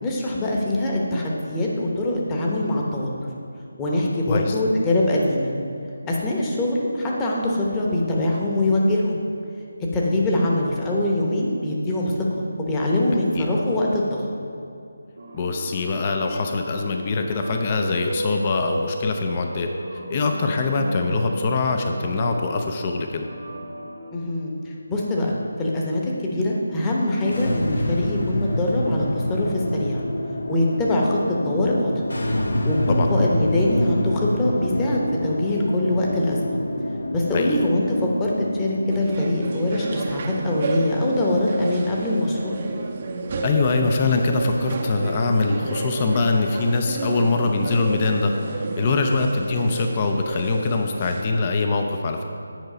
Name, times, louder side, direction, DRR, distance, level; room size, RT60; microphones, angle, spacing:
voice 1, 0.0-3.1 3.8-5.5 6.1-9.2 9.9-14.3 24.1-30.0 30.5-31.9 32.6-36.6 37.1-42.6, left 1 dB, 15° left, -3 dB, 1.0 m, -23 dB
sound 1, 15.2-24.1, right 1 dB, 60° right, 1.0 m, -34 dB
voice 2, 15.3-19.7 20.1-23.3 32.9-33.1 37.3-37.6 43.4-52.2, left 3 dB, 30° left, 4 dB, 0.5 m, -23 dB
sound 2, 27.3-42.5, left 1 dB, 70° left, 0.9 m, -28 dB
sound 3, 38.9-51.2, right 3 dB, 35° right, 0.6 m, -31 dB
9.2 x 4.7 x 4.9 m, 2.5 s
figure-of-eight pair, 160°, 0 cm